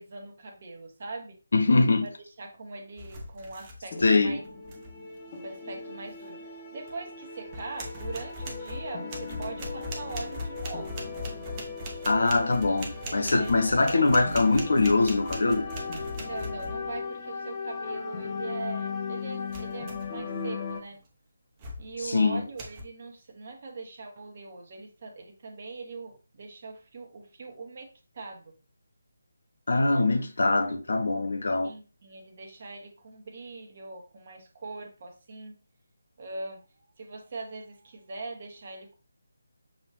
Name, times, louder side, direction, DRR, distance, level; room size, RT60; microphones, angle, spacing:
voice 1, 0.0-1.4 2.0-2.1 2.4-4.4 5.4-11.1 12.8-14.1 16.1-21.0 21.8-28.5 31.6-35.6 36.2-39.0, right 3 dB, 40° right, 1.1 m, -41 dB
voice 2, 1.5-2.1 4.0-4.4 12.1-15.7 22.0-22.4 29.7-31.7, left 3 dB, 55° left, 0.8 m, -23 dB
sound 1, 3.0-4.2 4.4-4.9 6.9-7.0 7.5-17.0 19.5-20.2 20.7-21.0 21.6-22.1 22.6-22.8, equal, 20° right, 0.8 m, -40 dB
sound 2, 3.9-20.8, left 4 dB, 25° left, 0.8 m, -38 dB
6.2 x 2.7 x 3.1 m
figure-of-eight pair, 150°, 0 cm